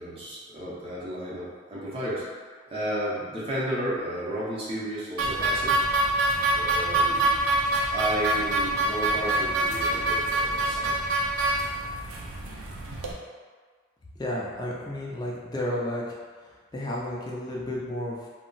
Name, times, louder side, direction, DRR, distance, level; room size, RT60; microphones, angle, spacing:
voice 1, 0.0-5.8 6.5-7.4 7.9-11.0, right 1 dB, 25° right, -8 dB, 0.6 m, -33 dB
sound 1, 5.2-13.1, right 2 dB, 90° right, 0.4 m, -25 dB
voice 2, 14.2-16.0 16.4-18.3, left 1 dB, 20° left, -4 dB, 0.4 m, -32 dB
2.3 x 2.0 x 3.8 m, 1.6 s
head